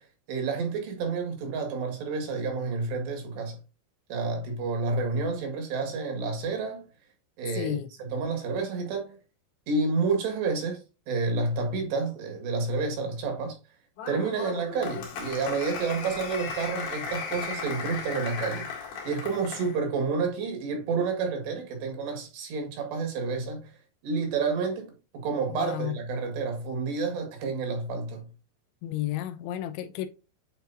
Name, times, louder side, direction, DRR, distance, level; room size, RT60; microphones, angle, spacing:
voice 1, 0.0-3.6 4.1-6.9 7.4-9.2 9.7-13.6 14.1-23.7 24.0-28.3, right 4 dB, 70° right, 3.7 m, -30 dB
voice 2, 7.6-7.9 25.5-25.9 28.8-30.1, left 12 dB, 85° left, 3.0 m, -32 dB
Applause, 14.0-19.8, left 5 dB, 60° left, 3.6 m, -36 dB
9.1 x 4.6 x 2.7 m
omnidirectional pair, 5.3 m